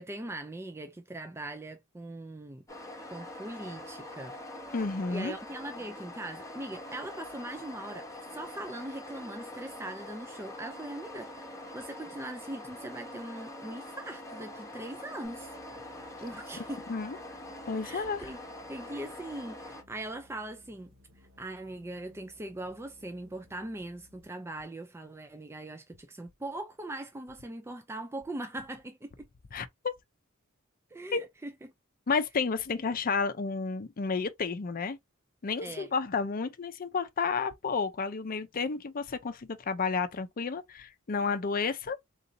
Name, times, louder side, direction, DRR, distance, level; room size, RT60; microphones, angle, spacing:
voice 1, 0.0-2.6 3.1-4.4 5.1-15.5 16.2-16.8 17.8-18.4 18.7-20.9 21.2-29.2 30.9-31.7 35.6-35.9, right 1 dB, 10° right, 0.4 m, -41 dB
sound 1, 2.7-19.8, left 1 dB, 15° left, 1.0 m, -44 dB
voice 2, 4.7-5.3 16.9-17.2 17.7-18.2 29.5-29.9 31.1-31.2 32.1-35.0 35.4-42.0, left 4 dB, 45° left, 0.5 m, -31 dB
sound 2, 15.2-24.4, left 2 dB, 75° right, 1.3 m, -61 dB
3.8 x 2.6 x 2.6 m
head